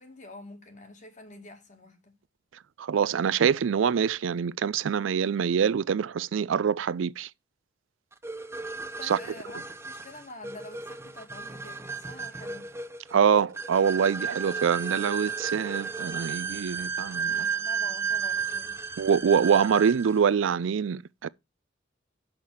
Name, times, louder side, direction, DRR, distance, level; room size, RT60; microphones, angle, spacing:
voice 1, 0.0-2.2 9.0-12.7 17.2-18.8, left 2 dB, 40° left, 2.2 m, -47 dB
voice 2, 2.8-7.3 9.0-9.2 13.1-17.5 19.0-21.3, right 7 dB, 75° right, 0.4 m, -25 dB
sound 1, 8.2-20.2, right 6 dB, 15° right, 0.6 m, -33 dB
6.5 x 5.9 x 7.1 m
head